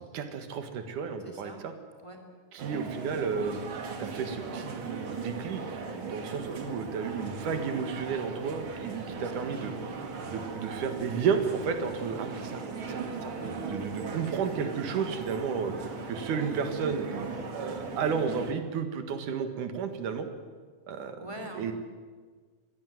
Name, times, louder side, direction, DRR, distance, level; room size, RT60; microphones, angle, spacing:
voice 1, 0.1-1.7 2.5-3.6 4.0-5.6 5.9-9.7 10.3-13.3 13.7-15.7 16.1-17.1 17.5-20.3 20.9-21.2 21.5-21.7, right 6 dB, 80° right, 8 dB, 3.1 m, -32 dB
voice 2, 1.2-1.6 2.0-2.2 9.0-9.5 21.0-21.7, right 1 dB, 10° left, 5 dB, 2.2 m, -44 dB
sound 1, 2.6-18.5, right 4 dB, 45° right, 2.3 m, -38 dB
22.5 x 16.5 x 9.2 m, 1.5 s
omnidirectional pair, 3.6 m